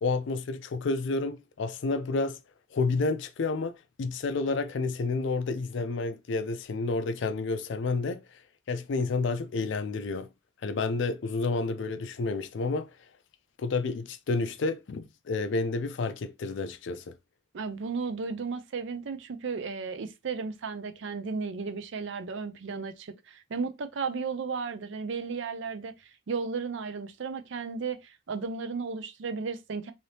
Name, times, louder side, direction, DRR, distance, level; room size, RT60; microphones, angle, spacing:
voice 1, 0.0-2.4 2.7-8.2 8.7-10.3 10.6-12.9 13.6-17.2, left 3 dB, 60° left, 0.4 m, -30 dB
voice 2, 17.5-25.9 26.3-29.9, right 5 dB, 60° right, 0.4 m, -34 dB
2.7 x 2.7 x 3.2 m
head